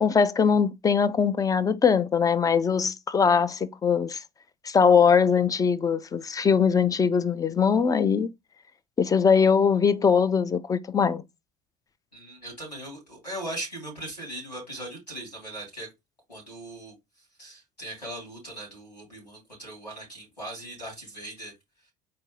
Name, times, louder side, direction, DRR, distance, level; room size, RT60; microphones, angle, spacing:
voice 1, 0.0-4.2 4.6-8.3 9.0-11.2, left 6 dB, 15° left, 0.4 m, -21 dB
voice 2, 12.1-15.9 16.3-16.9 17.4-21.5, right 1 dB, 90° left, 2.9 m, -39 dB
4.2 x 2.6 x 3.9 m
figure-of-eight pair, 65°, 21 cm